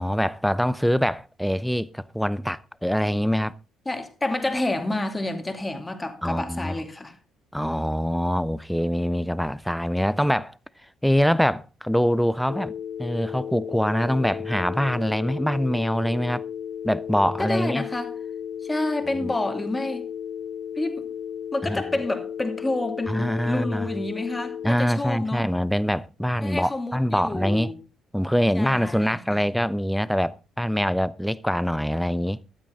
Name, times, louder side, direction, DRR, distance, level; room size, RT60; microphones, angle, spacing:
voice 1, 0.0-3.5 6.2-6.8 7.5-10.6 11.0-12.7 13.0-16.4 16.8-17.9 19.2-19.3 21.7-21.8 23.1-23.9 24.6-27.7 28.1-32.4, equal, ahead, 0.7 m, -24 dB
voice 2, 3.9-7.2 17.4-18.1 18.6-20.1 20.8-21.1 21.5-25.5 26.4-27.7 28.5-29.4, left 2 dB, 15° left, 2.5 m, -29 dB
Telephone, 12.5-24.7, left 8 dB, 50° left, 1.2 m, -34 dB
12.5 x 12.5 x 3.8 m
figure-of-eight pair, 45°, 0 cm